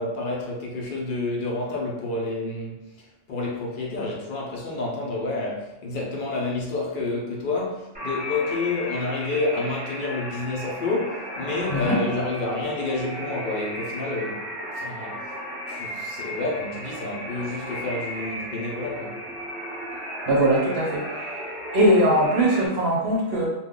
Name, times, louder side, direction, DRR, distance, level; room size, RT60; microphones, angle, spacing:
voice 1, 0.0-2.9 3.3-14.5 14.7-15.3 15.7-19.2, left 2 dB, 55° left, -2 dB, 0.6 m, -29 dB
sound 1, 7.9-22.7, equal, 10° right, 0.6 m, -34 dB
voice 2, 20.3-21.3 21.7-23.5, right 1 dB, 55° right, -3 dB, 0.8 m, -21 dB
2.2 x 2.2 x 3.6 m, 0.97 s
omnidirectional pair, 1.3 m